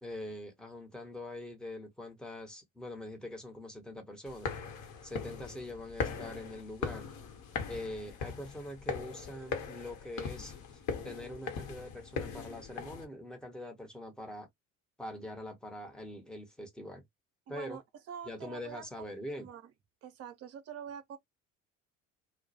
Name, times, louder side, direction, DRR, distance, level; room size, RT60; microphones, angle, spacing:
voice 1, 0.0-4.5 5.0-7.1 7.7-10.5 11.0-14.5 15.0-17.0 17.5-17.8 18.3-19.5, left 1 dB, ahead, 0.9 m, -43 dB
sound 1, 4.3-13.0, left 5 dB, 50° left, 0.9 m, -40 dB
voice 2, 17.5-17.8 18.1-18.8 19.4-19.6 20.0-21.2, right 8 dB, 40° right, 0.6 m, -45 dB
2.2 x 2.0 x 2.7 m
figure-of-eight pair, 55°, 39 cm